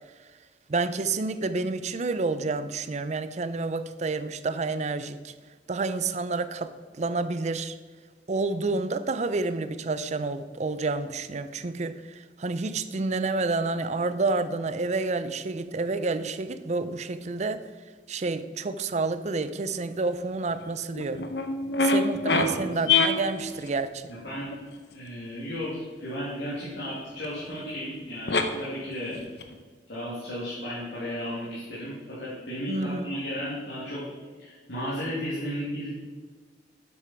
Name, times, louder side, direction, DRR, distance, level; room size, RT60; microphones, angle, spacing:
voice 1, 0.7-5.3 5.7-7.8 8.3-17.7 18.1-21.3 21.8-24.1 32.7-33.2, right 3 dB, 40° right, 12 dB, 0.5 m, -29 dB
sound 1, 20.5-20.6 20.9-22.5 22.8-23.7 24.4-24.6 27.2-27.3 27.5-27.6 28.3-28.4 28.9-29.5, left 3 dB, 65° left, 0.9 m, -24 dB
voice 2, 22.4-23.0 24.1-24.5 24.9-29.2 29.9-34.0 34.4-35.9, equal, 85° left, -9 dB, 2.8 m, -34 dB
9.0 x 7.9 x 4.5 m, 1.4 s
head